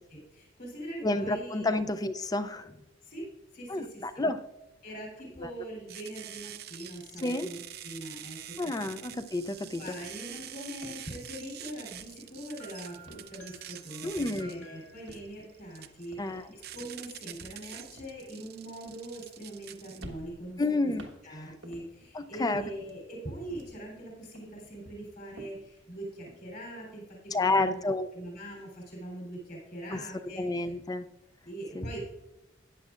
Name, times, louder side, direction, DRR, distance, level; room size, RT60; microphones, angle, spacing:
voice 1, 0.1-1.8 3.0-3.3 3.5-4.0 4.8-8.9 9.8-20.9 21.2-27.0 27.4-27.8 28.1-30.7 31.4-32.0, right 1 dB, 50° left, -1 dB, 3.5 m, -42 dB
voice 2, 1.0-2.7 3.7-4.4 5.4-5.5 7.2-7.5 8.6-9.8 14.0-14.7 16.2-16.4 20.6-21.0 22.1-22.6 27.3-28.1 29.9-30.0 30.4-31.1 31.7-32.0, left 2 dB, 20° left, 11 dB, 0.4 m, -30 dB
sound 1, 5.9-20.0, right 11 dB, 55° right, 0.6 m, -46 dB
sound 2, 9.1-9.3 9.6-12.6 12.9-13.8 14.0-14.4 14.9-19.6 20.0-22.1 22.5-24.0 24.4-26.4, right 1 dB, 90° right, 1.3 m, -53 dB
sound 3, 12.6-15.2, right 3 dB, 70° left, 2.4 m, -55 dB
14.0 x 9.5 x 2.5 m, 0.95 s
head